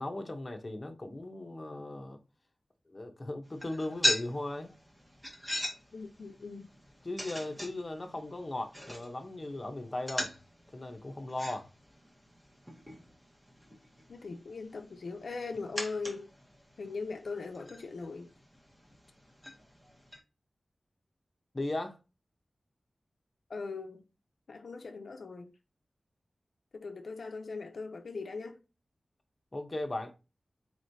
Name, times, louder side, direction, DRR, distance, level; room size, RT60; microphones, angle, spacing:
voice 1, 0.0-2.2 2.9-4.7 7.0-10.3 10.7-11.7 21.5-22.0 29.5-30.1, left 2 dB, 35° left, 0.7 m, -37 dB
sound 1, 3.4-20.2, equal, 10° right, 1.1 m, -40 dB
voice 2, 5.9-6.7 14.1-16.3 16.8-18.3 23.5-24.0 24.5-25.5 26.7-28.6, left 4 dB, 80° left, 0.4 m, -40 dB
4.3 x 3.0 x 2.7 m
wide cardioid pair, 70°, 0 cm